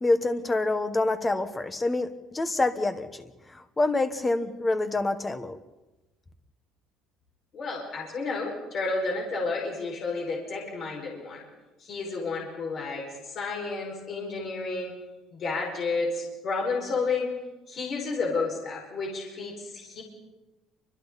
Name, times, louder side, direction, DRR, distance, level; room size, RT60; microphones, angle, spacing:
voice 1, 0.0-3.3 3.8-5.6, left 2 dB, 15° left, 9 dB, 1.2 m, -26 dB
voice 2, 7.5-11.4 11.8-14.9 15.3-17.3 17.7-20.0, left 3 dB, 35° left, -1 dB, 5.4 m, -31 dB
29.5 x 25.0 x 4.1 m, 1.1 s
cardioid pair, 165°, 0 cm